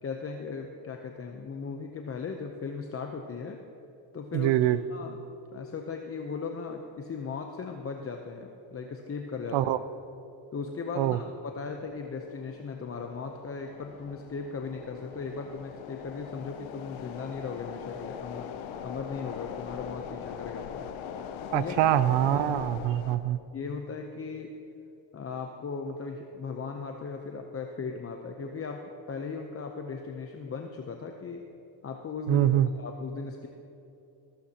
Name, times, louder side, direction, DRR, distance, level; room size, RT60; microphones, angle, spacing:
voice 1, 0.0-3.6 4.1-5.2 5.5-9.7 10.5-18.4 18.8-20.8 21.5-21.8 22.2-22.7 23.5-24.5 25.1-31.4 31.8-33.5, left 5 dB, 30° left, 3 dB, 0.7 m, -37 dB
voice 2, 4.3-4.8 9.5-9.8 11.0-11.2 21.5-23.4 32.3-32.7, right 12 dB, 70° right, 15 dB, 0.6 m, -24 dB
sound 1, 11.6-23.2, left 8 dB, 85° left, 0.8 m, -41 dB
15.0 x 14.0 x 2.9 m, 2.8 s
cardioid pair, 110°, 46 cm